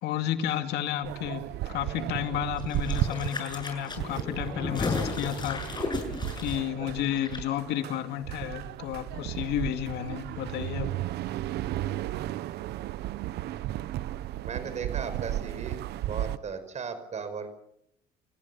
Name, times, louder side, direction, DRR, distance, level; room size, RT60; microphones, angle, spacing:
voice 1, 0.0-5.9 6.4-10.9, left 10 dB, 80° left, 7 dB, 2.4 m, -32 dB
sound 1, 1.0-16.4, right 14 dB, 75° right, 1.1 m, -35 dB
sound 2, 2.6-7.4 7.7-7.8, left 3 dB, 25° left, 7.4 m, -34 dB
voice 2, 14.4-17.6, right 5 dB, 45° right, 10 dB, 5.3 m, -37 dB
28.5 x 15.5 x 7.2 m, 0.75 s
cardioid pair, 110°, 17 cm